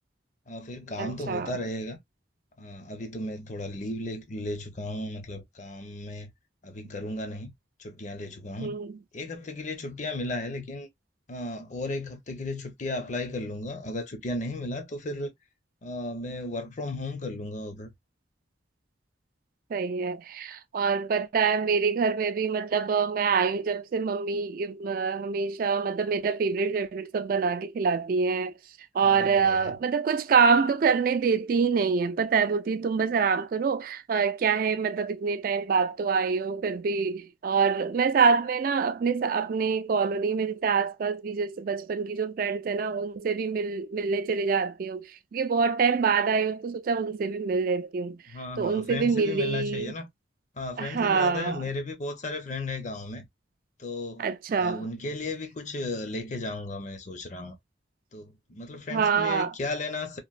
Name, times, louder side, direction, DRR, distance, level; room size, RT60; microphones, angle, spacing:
voice 1, 0.5-2.0 2.6-6.3 6.6-7.5 7.8-8.7 9.1-10.9 11.3-15.3 15.8-17.9 29.0-29.7 48.3-50.1 50.5-53.2 53.8-54.3 54.6-57.6 58.1-60.2, left 2 dB, 40° left, 0.6 m, -35 dB
voice 2, 1.0-1.5 8.6-8.9 19.7-28.5 28.9-48.2 48.6-49.9 50.8-51.6 54.2-54.9 58.9-59.5, right 5 dB, 50° right, 0.3 m, -26 dB
2.9 x 2.5 x 2.2 m
head